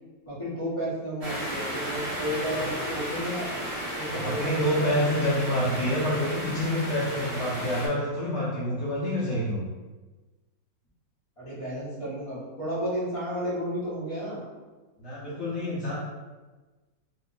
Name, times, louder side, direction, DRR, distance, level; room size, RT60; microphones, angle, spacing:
voice 1, 0.3-3.5 3.9-4.9 11.4-14.4, equal, 25° left, -8 dB, 0.8 m, -32 dB
sound 1, 1.2-7.9, equal, 75° right, 0.3 m, -34 dB
voice 2, 4.1-9.7 15.0-16.0, left 1 dB, 80° left, -6 dB, 0.6 m, -27 dB
3.1 x 2.1 x 3.8 m, 1.2 s
omnidirectional pair, 2.0 m